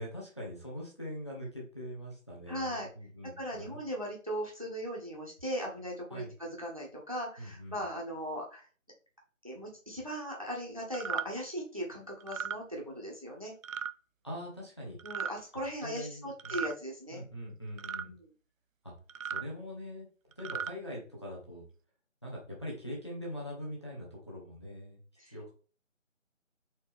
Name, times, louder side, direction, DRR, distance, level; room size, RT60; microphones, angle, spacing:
voice 1, 0.0-3.8 6.1-6.3 7.4-7.8 14.2-15.0 15.8-16.6 17.1-18.1 18.8-18.9 19.3-20.1 20.4-21.6 22.2-25.0 25.3-25.5, equal, 20° left, -3 dB, 1.0 m, -42 dB
voice 2, 2.5-2.9 3.4-8.7 9.4-13.5 15.0-17.2 18.0-18.3 25.2-25.4, equal, 25° right, -1 dB, 0.8 m, -38 dB
sound 1, 10.9-11.3 12.2-12.6 13.6-13.9 15.0-15.3 16.4-16.8 17.8-18.1 19.1-19.4 20.3-20.7, right 7 dB, 80° right, 0.5 m, -36 dB
4.4 x 3.5 x 3.5 m, 0.38 s
figure-of-eight pair, 165°, 40 cm